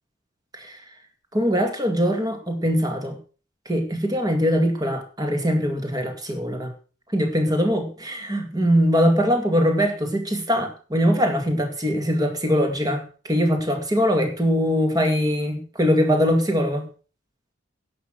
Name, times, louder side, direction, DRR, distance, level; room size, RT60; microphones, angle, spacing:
voice 1, 1.3-3.2 3.7-6.7 7.1-16.8, equal, 20° right, 5 dB, 2.1 m, -22 dB
11.0 x 7.8 x 6.2 m, 0.38 s
head